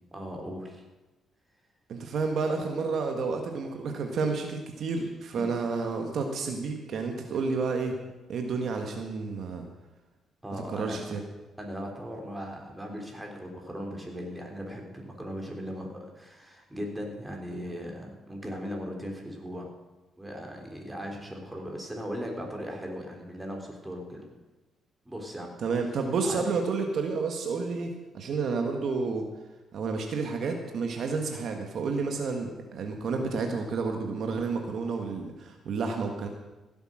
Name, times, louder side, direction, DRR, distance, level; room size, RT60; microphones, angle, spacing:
voice 1, 0.1-0.8 5.3-5.5 10.4-11.0 11.6-19.7 20.2-24.3 25.1-25.5 26.2-26.4, equal, 10° right, 1 dB, 3.5 m, -38 dB
voice 2, 1.9-8.0 8.3-9.6 10.7-11.2 25.6-29.3 29.7-36.3, right 4 dB, 65° right, 4 dB, 1.6 m, -30 dB
16.0 x 8.1 x 6.4 m, 1.1 s
cardioid pair, 90°, 0 cm